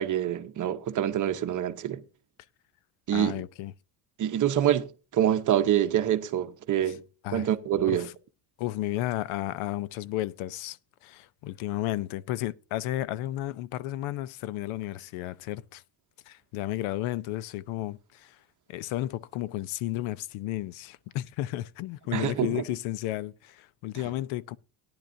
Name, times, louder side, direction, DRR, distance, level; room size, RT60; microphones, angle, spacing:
voice 1, 0.0-2.0 3.1-3.4 4.2-7.0 7.3-8.1 22.1-22.6, right 11 dB, 40° right, 0.8 m, -26 dB
voice 2, 3.1-3.7 6.9-7.0 7.2-7.5 7.9-8.1 8.6-15.8 16.3-18.4 18.7-24.6, left 15 dB, 75° left, 0.7 m, -33 dB
18.0 x 10.5 x 2.6 m
cardioid pair, 145°, 48 cm